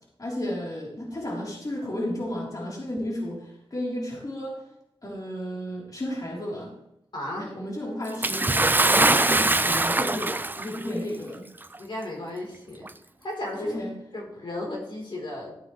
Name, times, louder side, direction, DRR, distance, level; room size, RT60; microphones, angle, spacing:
voice 1, 0.2-4.6 5.0-6.7 7.4-8.5 8.8-11.4 13.6-13.9, left 1 dB, 40° left, -3 dB, 3.5 m, -33 dB
voice 2, 7.1-7.5 11.8-12.9 13.2-13.8 14.1-15.6, left 1 dB, 55° left, -2 dB, 3.7 m, -35 dB
Bathtub (filling or washing) / Splash splatter, 8.2-10.8 11.7-11.8 12.8-12.9, right 2 dB, 20° right, 0.5 m, -22 dB
14.0 x 8.7 x 3.2 m, 0.86 s
cardioid pair, 60°, 10 cm